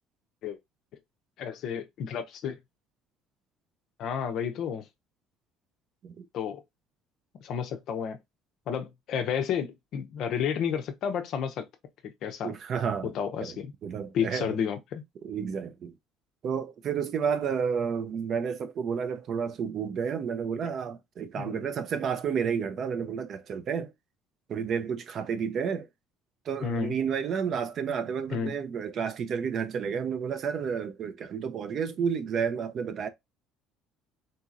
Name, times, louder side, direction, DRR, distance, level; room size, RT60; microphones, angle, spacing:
voice 1, 1.4-2.6 4.0-4.9 6.3-6.6 7.4-8.2 8.7-11.7 12.2-12.5 13.1-13.7 14.1-15.0 21.3-21.6 26.6-27.0 28.3-28.5, left 7 dB, 50° left, 0.6 m, -31 dB
voice 2, 12.4-13.1 13.4-14.5 15.2-15.9 16.4-23.9 24.5-25.9 26.5-33.1, right 7 dB, 35° right, 0.4 m, -31 dB
3.9 x 2.8 x 2.4 m
cardioid pair, 165°, 0 cm